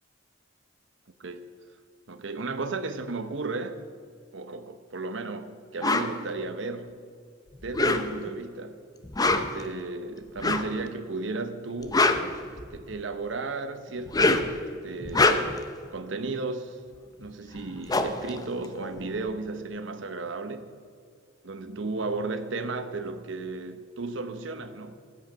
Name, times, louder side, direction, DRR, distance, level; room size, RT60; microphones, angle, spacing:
voice 1, 2.1-3.8 4.3-7.0 7.6-8.8 9.3-12.1 12.5-15.7 15.9-16.8 17.2-20.7 21.4-25.0, right 3 dB, 70° right, 9 dB, 0.8 m, -34 dB
sound 1, 5.8-6.1 7.6-8.3 9.0-9.6 10.4-10.8 11.7-12.9 14.0-14.6 15.0-15.7 17.2-17.3 17.6-19.3, left 2 dB, 20° left, 0.6 m, -25 dB
13.5 x 8.2 x 5.7 m, 2.1 s
head